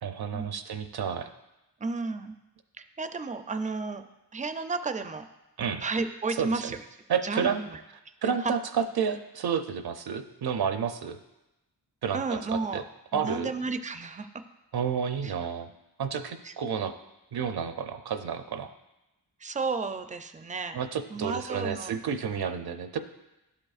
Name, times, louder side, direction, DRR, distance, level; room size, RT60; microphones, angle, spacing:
voice 1, 0.0-1.3 5.6-5.8 6.4-6.7 7.1-7.6 8.2-11.2 12.0-12.8 13.1-13.5 14.7-15.7 16.0-16.9 17.3-18.7 20.7-23.0, right 7 dB, 70° right, 9 dB, 0.6 m, -30 dB
voice 2, 1.8-2.4 2.8-4.0 4.3-5.2 5.8-6.8 7.2-7.8 8.4-8.5 12.1-12.8 13.1-14.3 15.2-15.3 16.4-16.5 19.4-20.8 21.1-21.9, right 3 dB, 20° right, 9 dB, 0.4 m, -32 dB
11.5 x 5.2 x 2.4 m, 0.96 s
wide cardioid pair, 75°, 40 cm